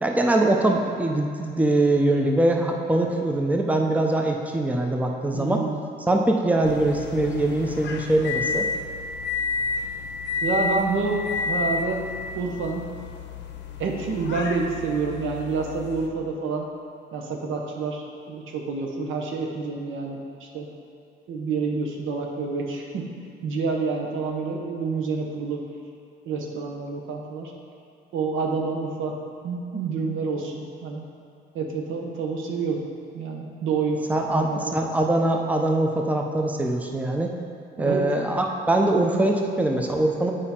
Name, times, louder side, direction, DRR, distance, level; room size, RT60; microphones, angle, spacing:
voice 1, 0.0-5.6 6.1-8.7 34.1-37.4 37.8-40.3, right 1 dB, 5° right, 2 dB, 0.7 m, -22 dB
voice 2, 5.3-5.8 10.4-11.2 11.5-12.0 12.3-12.8 13.8-16.7 17.1-20.2 20.5-20.7 21.3-23.1 23.4-25.6 26.2-27.5 28.1-29.1 29.4-31.1 31.5-32.8 33.1-34.7 37.8-38.0, right 4 dB, 80° right, 1 dB, 1.1 m, -28 dB
sound 1, 6.6-16.1, left 4 dB, 65° left, 0.7 m, -31 dB
8.2 x 5.1 x 4.3 m, 2.5 s
cardioid pair, 90°, 20 cm